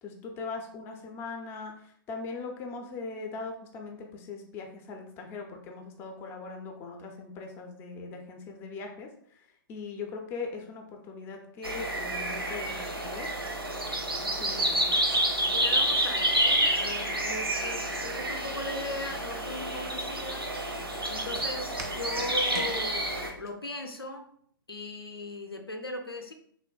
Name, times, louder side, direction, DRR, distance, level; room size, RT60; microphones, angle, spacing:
voice 1, 0.0-13.3 14.4-14.9, left 4 dB, 20° left, 3 dB, 0.4 m, -40 dB
sound 1, 11.6-23.3, right 1 dB, 90° right, 0.6 m, -29 dB
voice 2, 14.2-20.5 21.1-24.3 24.7-26.3, left 2 dB, 90° left, 4 dB, 0.4 m, -39 dB
Walk footsteps, 20.3-23.5, right 3 dB, 45° right, 0.4 m, -46 dB
3.4 x 2.1 x 2.2 m, 0.62 s
figure-of-eight pair, 115°, 12 cm